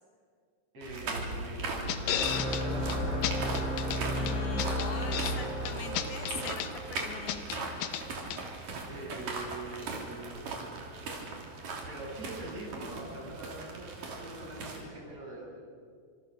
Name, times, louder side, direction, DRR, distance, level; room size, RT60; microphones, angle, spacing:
voice 1, 0.7-3.2 8.8-10.4 11.9-15.5, right 2 dB, 50° right, -3 dB, 8.8 m, -43 dB
sound 1, 0.8-14.8, right 3 dB, 80° right, 4.9 m, -39 dB
sound 2, 1.9-2.6 2.9-3.0 3.2-4.0 4.3-5.4 5.7-6.7 7.0-8.0 8.3-8.4, left 10 dB, 85° left, 2.8 m, -33 dB
sound 3, 2.0-7.3, equal, 45° left, 7.2 m, -34 dB
voice 2, 4.1-7.7, left 6 dB, 65° left, 6 dB, 3.3 m, -42 dB
28.5 x 26.5 x 6.5 m, 2.1 s
omnidirectional pair, 3.8 m